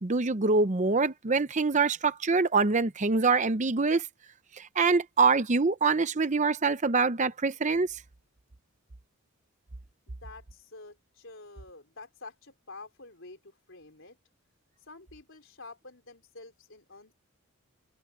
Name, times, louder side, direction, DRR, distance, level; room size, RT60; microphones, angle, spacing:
voice 1, 0.0-4.1 4.6-8.0, right 4 dB, 35° right, 0.7 m, -25 dB
voice 2, 10.1-14.2 14.9-17.1, left 3 dB, 60° left, 4.6 m, -49 dB
head